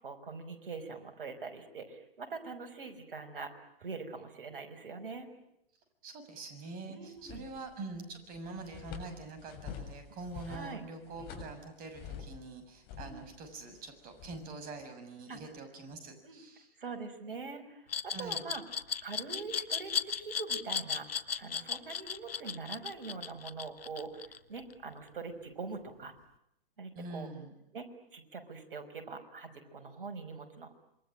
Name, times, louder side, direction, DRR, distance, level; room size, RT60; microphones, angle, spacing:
voice 1, 0.0-5.3 6.9-7.4 10.5-10.8 11.2-11.3 13.0-13.2 15.3-15.4 16.2-16.4 16.8-18.6 19.0-21.1 21.4-26.1 26.8-27.3 27.7-30.7, right 4 dB, 65° right, 6 dB, 5.6 m, -43 dB
voice 2, 6.0-16.7 18.1-18.4 26.9-27.5, right 3 dB, 30° right, 7 dB, 6.6 m, -45 dB
sound 1, 7.2-8.0 8.3-12.5 12.8-14.5, left 7 dB, 35° left, 7.2 m, -47 dB
Glass, 17.9-24.7, left 7 dB, 80° left, 1.2 m, -35 dB
27.5 x 23.5 x 9.0 m, 0.78 s
hypercardioid pair, 120°, 29 cm